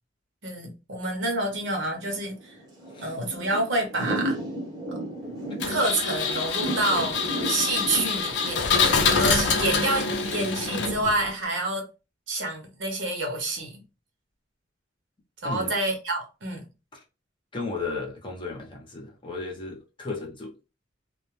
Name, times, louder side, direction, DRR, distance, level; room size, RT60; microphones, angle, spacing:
voice 1, 0.4-2.6 3.0-4.4 5.7-11.9 12.3-13.8 15.4-16.6, right 2 dB, 70° right, 0.8 m, -28 dB
Thunder / Rain, 1.5-8.6, right 1 dB, 20° right, 0.8 m, -34 dB
Engine, 5.6-11.3, left 4 dB, 65° left, 0.5 m, -25 dB
voice 2, 15.4-15.7 16.9-17.0 17.5-20.5, left 3 dB, 25° left, 0.7 m, -34 dB
2.3 x 2.1 x 3.0 m
head